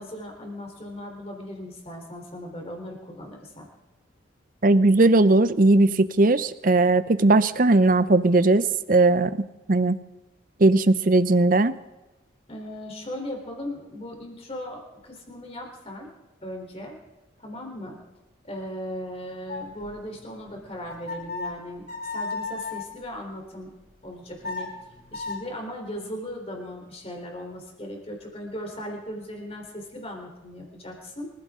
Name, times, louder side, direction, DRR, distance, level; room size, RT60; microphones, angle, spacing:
voice 1, 0.0-3.7 12.5-16.1 16.4-16.9 17.4-18.0 18.4-23.7 24.0-24.7 25.1-31.3, left 1 dB, 30° left, 1 dB, 3.7 m, -37 dB
voice 2, 4.6-9.4 9.7-10.0 10.6-11.8, right 2 dB, 45° right, 14 dB, 0.6 m, -18 dB
sound 1, 19.5-22.9 24.1-25.4, left 3 dB, 50° left, 6.9 m, -35 dB
25.0 x 15.0 x 3.7 m, 1.1 s
head